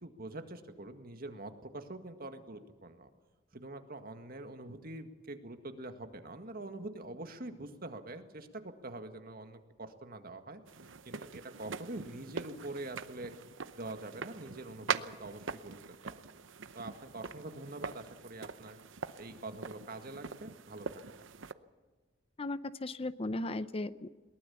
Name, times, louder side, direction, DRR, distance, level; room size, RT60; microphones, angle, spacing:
voice 1, 0.0-3.1 3.5-10.6 11.1-13.3 13.8-15.8 16.0-16.2 16.8-18.8 19.2-20.9, right 2 dB, 50° right, 7 dB, 1.9 m, -45 dB
sound 1, 10.7-21.5, right 5 dB, 70° right, 0.8 m, -42 dB
voice 2, 22.4-24.1, left 2 dB, 30° left, 14 dB, 0.6 m, -36 dB
22.0 x 19.0 x 7.1 m, 1.4 s
head